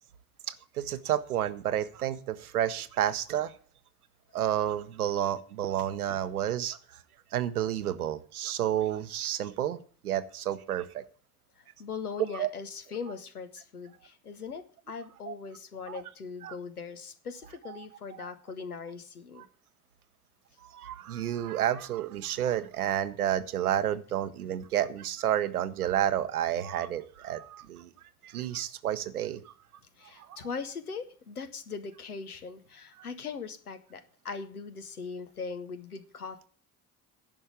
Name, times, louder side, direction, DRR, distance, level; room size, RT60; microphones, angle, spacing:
voice 1, 0.5-3.5 4.3-7.0 7.3-9.8 10.0-11.0 12.3-12.5 15.3-15.4 15.9-16.0 16.4-16.6 17.6-17.9 18.1-18.3 19.4-19.5 20.6-27.9 28.2-29.5 30.2-30.4 33.0-33.1, right 11 dB, 85° right, 12 dB, 0.8 m, -30 dB
voice 2, 11.8-19.4 30.0-36.5, left 5 dB, 90° left, 10 dB, 1.0 m, -40 dB
10.5 x 5.5 x 8.2 m, 0.43 s
figure-of-eight pair, 50°, 43 cm